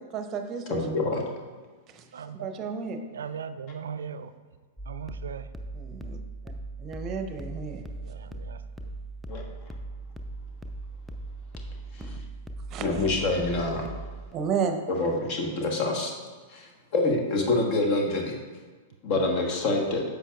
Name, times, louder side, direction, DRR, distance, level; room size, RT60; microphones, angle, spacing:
voice 1, 0.1-0.8 1.9-2.0 2.4-3.0 5.7-6.2 6.8-7.8 12.0-12.2 12.7-12.9 14.3-14.8, right 6 dB, 30° right, 7 dB, 0.7 m, -32 dB
voice 2, 0.7-1.2 9.3-9.7 11.9-12.2 12.8-13.9 14.9-16.1 16.5-18.4 19.0-20.0, left 2 dB, 45° left, 2 dB, 1.3 m, -27 dB
voice 3, 2.1-2.5 3.1-4.3 4.9-5.5 8.0-8.6, right 7 dB, 65° right, 11 dB, 0.4 m, -38 dB
sound 1, 4.8-14.3, right 2 dB, ahead, 0.5 m, -39 dB
9.9 x 6.7 x 2.4 m, 1.4 s
figure-of-eight pair, 100°, 0 cm